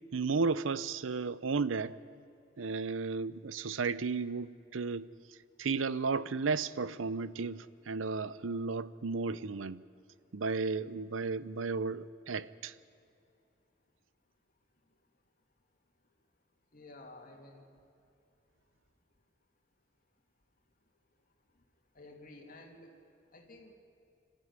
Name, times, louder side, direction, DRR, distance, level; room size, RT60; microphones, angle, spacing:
voice 1, 0.1-2.0 2.6-5.1 5.6-9.8 10.3-12.7, right 4 dB, 85° right, 0.6 m, -34 dB
voice 2, 16.7-17.7 21.9-22.9 23.3-23.8, left 2 dB, 45° left, 2.7 m, -52 dB
25.5 x 13.0 x 9.6 m
head